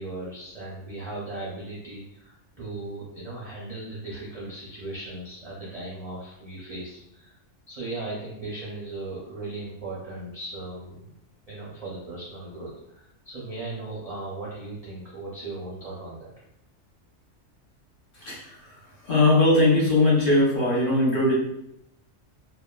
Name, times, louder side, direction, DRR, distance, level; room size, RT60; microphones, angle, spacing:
voice 1, 0.0-7.4 7.7-11.1 11.5-16.3, right 2 dB, 55° right, -6 dB, 0.4 m, -37 dB
voice 2, 18.2-18.5 19.1-21.3, left 2 dB, 50° left, -6 dB, 0.8 m, -20 dB
2.9 x 2.1 x 2.2 m, 0.82 s
omnidirectional pair, 1.3 m